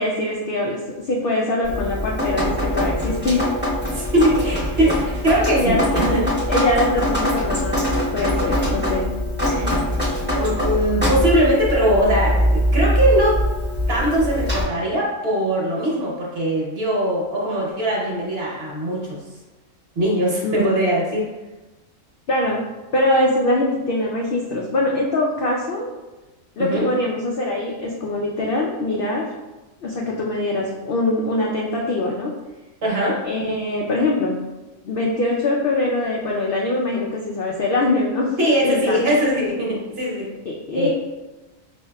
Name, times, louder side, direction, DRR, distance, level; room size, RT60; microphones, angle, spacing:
voice 1, 0.0-3.4 5.5-5.8 6.5-7.8 8.1-9.1 20.4-20.7 22.3-22.6 22.9-25.9 26.6-29.3 29.8-32.3 33.2-34.4 34.8-38.3 38.6-39.0 40.5-40.9, left 2 dB, 85° left, -2 dB, 0.5 m, -23 dB
Drip, 1.6-14.6, equal, 10° right, 0.8 m, -22 dB
voice 2, 3.9-6.2 9.5-9.8 10.3-13.4 13.9-19.2 19.9-21.3 26.6-26.9 32.8-33.2 38.4-40.3 40.7-40.9, equal, 50° right, -4 dB, 1.1 m, -21 dB
5.4 x 2.7 x 2.3 m, 1.1 s
omnidirectional pair, 1.5 m